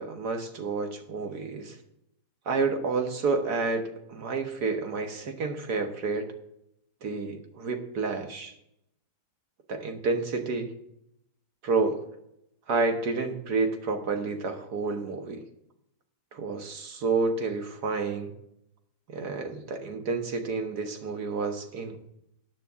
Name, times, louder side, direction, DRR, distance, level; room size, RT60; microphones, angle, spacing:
voice 1, 0.0-1.8 2.5-6.3 7.0-8.5 9.7-10.7 11.6-12.0 12.7-15.4 16.3-18.3 19.1-22.0, right 4 dB, 70° right, 5 dB, 1.9 m, -29 dB
14.0 x 9.3 x 3.7 m, 0.79 s
omnidirectional pair, 1.8 m